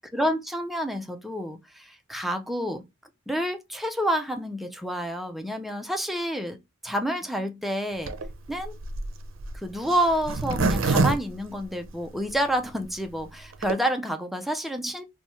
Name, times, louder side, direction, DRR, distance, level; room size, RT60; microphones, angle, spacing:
voice 1, 0.1-2.8 3.3-6.6 6.8-8.1 8.5-8.7 9.5-15.0, equal, ahead, 0.4 m, -29 dB
Zipper (clothing), 8.0-12.3 12.8-12.9 13.1-13.2 13.4-13.7, right 3 dB, 75° right, 0.5 m, -27 dB
3.0 x 2.2 x 4.1 m
head